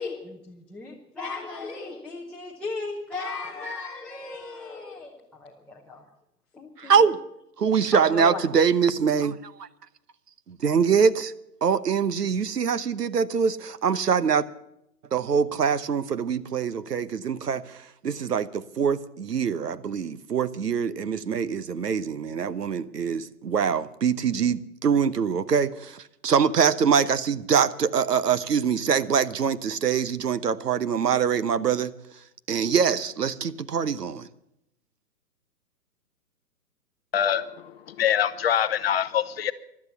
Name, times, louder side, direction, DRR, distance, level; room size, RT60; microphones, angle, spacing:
voice 1, 0.0-6.0 6.5-7.1 7.9-8.4, left 3 dB, 5° left, -5 dB, 0.9 m, -36 dB
voice 2, 6.8-7.2 7.6-9.7 10.5-11.3 11.6-14.4 15.1-31.9 32.5-34.3, right 6 dB, 90° right, 15 dB, 1.0 m, -24 dB
voice 3, 37.1-37.5 37.9-39.5, left 9 dB, 40° left, 12 dB, 0.7 m, -24 dB
16.0 x 12.0 x 7.0 m, 0.80 s
hypercardioid pair, 140°, 47 cm